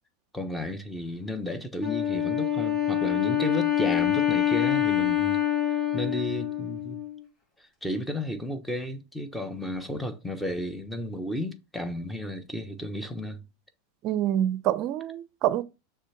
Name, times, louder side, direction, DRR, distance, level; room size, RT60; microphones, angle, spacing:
voice 1, 0.3-5.4 5.9-7.0 7.8-13.4, left 1 dB, 5° left, 1.1 m, -33 dB
Wind instrument woodwind instrument, 1.8-7.2, left 11 dB, 25° left, 3.0 m, -26 dB
voice 2, 14.0-15.6, right 12 dB, 45° right, 0.6 m, -26 dB
6.6 x 3.4 x 5.8 m
supercardioid pair, 130°, 0 cm